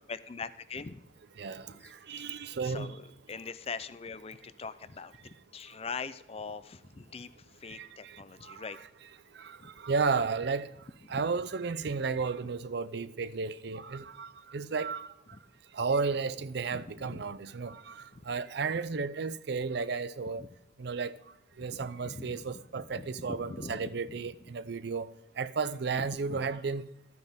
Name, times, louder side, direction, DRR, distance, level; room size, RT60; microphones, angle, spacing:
voice 1, 0.1-1.0 1.7-5.1 5.5-8.8 9.6-9.7 11.1-11.2 11.9-12.0 14.0-14.1 15.3-15.4 16.7-17.2 18.1-18.2 20.4-20.5 21.6-24.2 24.4-24.5 26.3-26.4, left 4 dB, 30° left, 0.5 m, -43 dB
voice 2, 1.4-2.9 7.7-8.6 9.3-10.7 11.1-15.1 15.7-20.4 20.8-21.1 21.6-25.1 25.4-26.9, right 4 dB, 60° right, 0.5 m, -33 dB
13.0 x 9.4 x 3.5 m
head